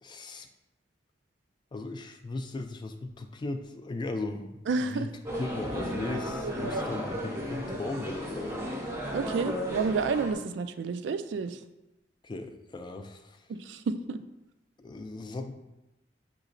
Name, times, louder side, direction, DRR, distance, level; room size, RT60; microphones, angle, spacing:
voice 1, 0.0-0.5 1.7-5.1 5.4-8.6 12.2-13.4 14.8-15.5, left 2 dB, 25° left, 6 dB, 0.3 m, -37 dB
voice 2, 4.7-5.1 6.4-6.9 9.1-11.6 13.6-14.2, right 4 dB, 90° right, 10 dB, 0.3 m, -30 dB
sound 1, 5.2-10.3, equal, 15° right, 0.6 m, -34 dB
6.4 x 3.0 x 2.5 m, 0.95 s
head